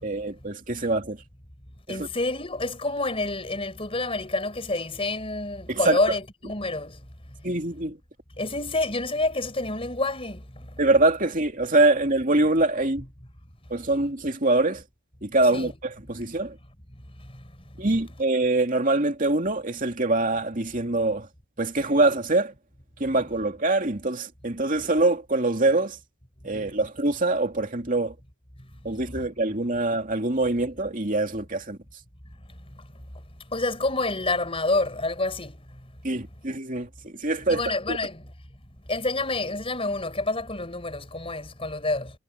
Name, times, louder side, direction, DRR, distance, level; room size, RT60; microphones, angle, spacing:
voice 1, 0.0-1.2 1.9-2.1 5.7-6.0 7.4-8.0 10.8-13.0 13.7-14.8 15.2-16.6 17.8-21.3 21.6-22.5 23.0-26.0 26.4-28.1 28.8-31.8 36.0-37.6 37.9-38.0, right 2 dB, 35° right, 2.6 m, -24 dB
voice 2, 1.9-7.0 8.4-10.4 15.5-15.8 33.5-35.6 37.5-38.2 38.9-42.1, left 2 dB, 25° left, 4.7 m, -28 dB
head